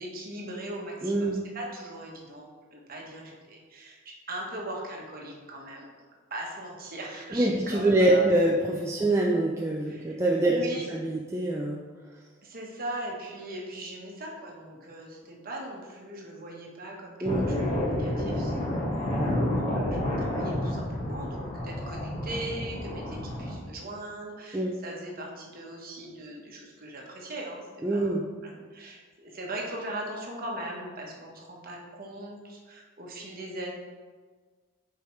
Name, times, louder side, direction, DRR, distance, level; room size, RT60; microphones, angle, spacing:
voice 1, 0.0-5.9 6.3-8.2 9.9-10.2 10.5-11.0 12.4-33.7, right 1 dB, 45° right, -1 dB, 1.2 m, -40 dB
voice 2, 1.0-1.4 7.3-11.8 17.2-17.4 24.5-24.7 27.8-28.3, right 1 dB, 15° right, -2 dB, 0.4 m, -25 dB
sound 1, 17.2-23.5, left 1 dB, 25° left, 1.6 m, -30 dB
8.1 x 4.7 x 3.1 m, 1.5 s
head